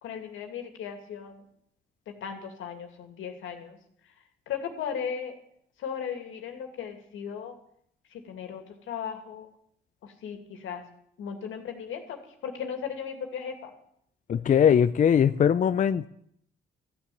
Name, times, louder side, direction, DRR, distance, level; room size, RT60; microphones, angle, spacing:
voice 1, 0.0-1.4 2.1-3.8 4.5-5.4 5.8-7.6 8.1-9.5 10.0-10.8 11.2-13.7, left 7 dB, 80° left, 5 dB, 2.4 m, -36 dB
voice 2, 14.3-16.1, left 8 dB, 40° left, 12 dB, 0.5 m, -21 dB
14.5 x 7.1 x 9.2 m, 0.71 s
cardioid pair, 90°, 20 cm